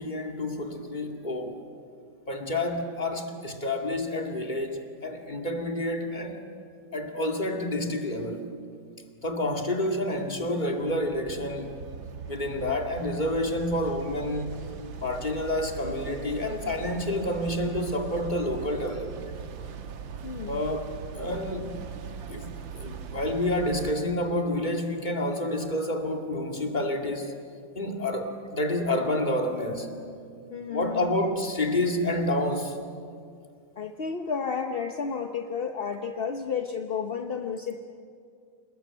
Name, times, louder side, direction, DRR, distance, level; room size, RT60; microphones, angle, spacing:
voice 1, 0.0-1.6 2.3-6.4 6.9-8.4 9.2-11.8 12.3-14.6 15.0-19.4 20.5-20.9 21.1-21.8 22.3-27.3 27.7-29.9 30.7-32.9, left 1 dB, 25° left, 4 dB, 2.2 m, -29 dB
sound 1, 10.8-24.0, right 7 dB, 85° right, 2.0 m, -40 dB
voice 2, 20.2-20.6 30.5-31.1 33.8-37.8, left 6 dB, 45° left, 5 dB, 0.8 m, -32 dB
28.0 x 20.0 x 8.9 m, 2.3 s
omnidirectional pair, 2.0 m